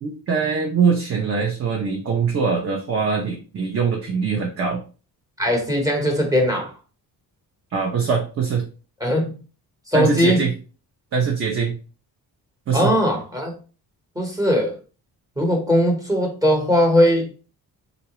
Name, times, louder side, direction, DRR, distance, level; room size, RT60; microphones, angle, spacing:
voice 1, 0.0-4.8 7.7-8.6 9.9-10.5 11.1-11.7 12.7-12.9, right 5 dB, 35° right, 0.6 m, -22 dB
voice 2, 5.4-6.7 9.0-9.3 9.9-10.5 12.7-13.6 14.1-14.8 15.4-17.3, equal, 10° right, 0.9 m, -19 dB
3.9 x 2.2 x 2.9 m
cardioid pair, 125°, 39 cm